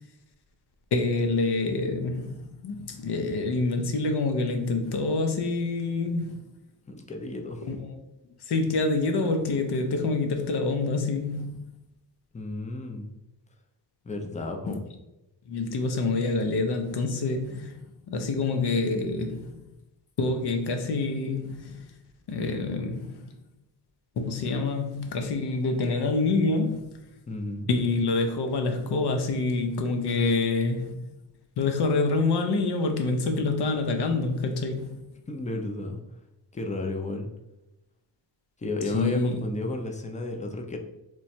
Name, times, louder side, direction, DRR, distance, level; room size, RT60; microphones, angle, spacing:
voice 1, 0.9-6.4 7.6-8.0 8.5-11.6 14.7-14.8 15.5-19.5 20.2-21.8 22.3-23.2 24.2-26.9 27.7-31.0 31.6-34.9 38.9-39.5, left 3 dB, 65° left, 0.7 m, -27 dB
voice 2, 6.9-7.7 12.3-13.1 14.0-14.8 27.3-27.7 35.3-36.0 36.5-37.3 38.6-40.8, left 2 dB, 15° left, 0.5 m, -32 dB
3.1 x 2.3 x 4.2 m
cardioid pair, 85°, 43 cm